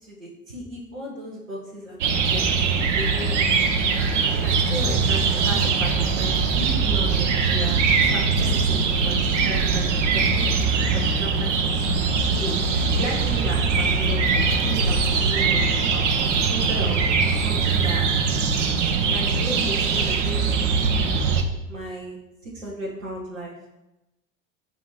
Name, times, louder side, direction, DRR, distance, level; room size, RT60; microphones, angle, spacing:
voice 1, 0.0-2.4 3.0-3.6 4.2-11.6 12.2-12.5 12.9-16.1 16.5-17.0 17.4-18.1 19.1-21.0 21.7-22.2 22.4-23.5, right 1 dB, 85° right, -3 dB, 1.2 m, -35 dB
sound 1, 2.0-21.4, right 4 dB, 65° right, 0.8 m, -22 dB
7.4 x 2.8 x 5.6 m, 0.94 s
figure-of-eight pair, 65°, 38 cm